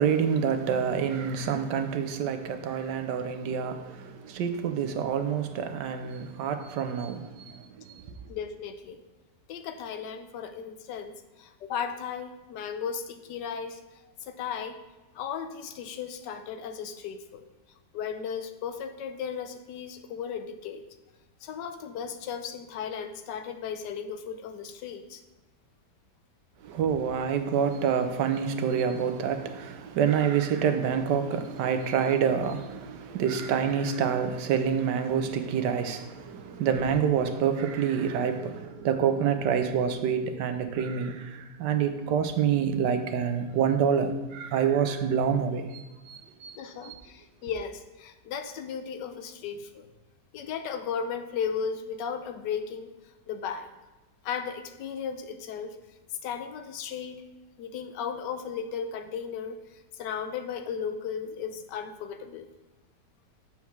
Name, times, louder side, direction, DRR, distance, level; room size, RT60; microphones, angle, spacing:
voice 1, 0.0-8.1 26.6-46.6 46.8-46.9, right 7 dB, 80° right, 1.3 m, -27 dB
voice 2, 8.3-9.0 9.5-13.8 14.2-14.8 15.1-17.4 17.9-20.8 21.4-25.2 46.5-49.9 50.3-52.9 53.3-53.7 54.2-55.8 56.2-57.2 57.6-62.5, left 7 dB, 85° left, 1.3 m, -35 dB
7.1 x 4.6 x 5.9 m
omnidirectional pair, 1.8 m